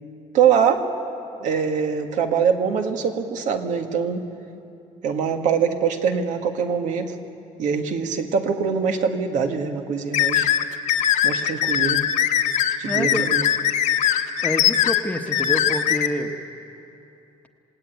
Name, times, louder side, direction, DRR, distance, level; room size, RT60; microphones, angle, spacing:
voice 1, 0.3-0.9 1.4-4.2 5.0-7.1 7.6-10.5 11.2-12.0 12.8-13.5, right 6 dB, 75° right, 5 dB, 1.9 m, -23 dB
sound 1, 10.1-16.1, left 10 dB, 75° left, 1.3 m, -21 dB
voice 2, 12.8-13.3 14.4-16.3, left 1 dB, 10° left, 5 dB, 1.2 m, -27 dB
28.0 x 18.0 x 9.4 m, 2.7 s
cardioid pair, 150°, 12 cm